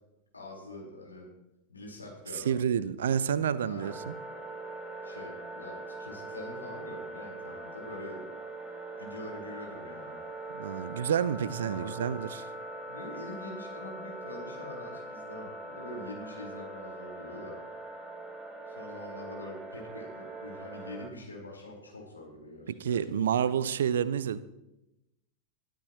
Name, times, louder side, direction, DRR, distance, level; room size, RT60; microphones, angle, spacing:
voice 1, 0.3-1.3 1.7-2.6 3.6-3.9 5.0-8.2 9.0-10.2 11.7-11.9 12.9-17.7 18.7-23.4, left 1 dB, 80° left, 4.8 m, -44 dB
voice 2, 2.4-4.2 10.5-12.5 22.7-24.4, right 8 dB, 60° right, 0.6 m, -29 dB
sound 1, 3.8-21.1, right 2 dB, 15° right, 1.9 m, -42 dB
21.0 x 13.0 x 3.2 m
figure-of-eight pair, 90°, 0 cm